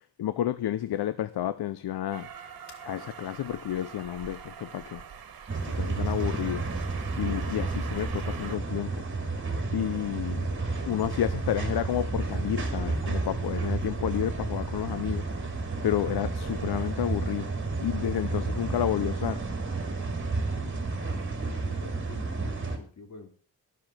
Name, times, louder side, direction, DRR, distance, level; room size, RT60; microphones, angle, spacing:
voice 1, 0.2-2.3 2.8-5.0 5.7-6.7 7.2-9.0 9.7-10.5 10.9-15.2 15.8-17.5 17.8-19.4, left 11 dB, 75° left, 0.7 m, -30 dB
Train, 2.1-8.6, right 7 dB, 60° right, 1.6 m, -44 dB
sound 1, 5.5-22.8, right 3 dB, 30° right, 2.5 m, -31 dB
voice 2, 7.6-7.9 10.2-10.3 21.4-23.3, left 4 dB, 45° left, 3.4 m, -48 dB
12.0 x 6.9 x 7.6 m
wide cardioid pair, 130°, 39 cm